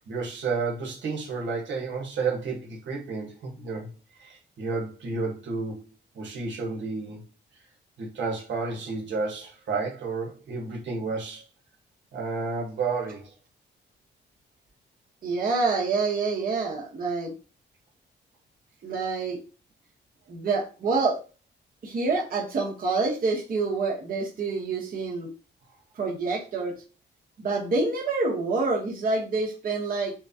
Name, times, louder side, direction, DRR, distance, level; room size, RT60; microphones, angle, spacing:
voice 1, 0.1-3.9 4.2-5.9 6.1-7.2 8.0-11.4 12.1-13.4, right 4 dB, 75° right, 0 dB, 1.3 m, -31 dB
voice 2, 15.2-17.3 18.8-19.4 20.3-21.2 21.8-25.3 26.0-26.7 27.4-30.1, right 3 dB, 50° right, -1 dB, 1.1 m, -27 dB
6.1 x 2.2 x 2.7 m, 0.34 s
cardioid pair, 115°, 19 cm